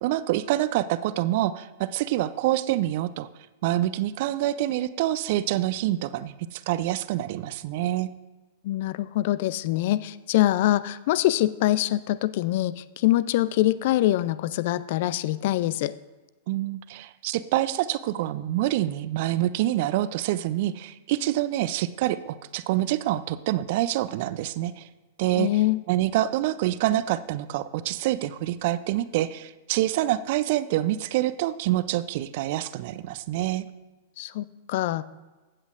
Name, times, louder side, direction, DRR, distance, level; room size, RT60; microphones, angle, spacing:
voice 1, 0.0-3.3 3.6-8.1 16.5-24.9 25.2-25.5 25.9-33.7, right 14 dB, 50° right, 15 dB, 0.4 m, -26 dB
voice 2, 8.6-15.9 25.4-25.8 34.2-35.0, left 15 dB, 50° left, 17 dB, 0.3 m, -24 dB
15.0 x 8.0 x 2.5 m, 1.2 s
figure-of-eight pair, 95°, 0 cm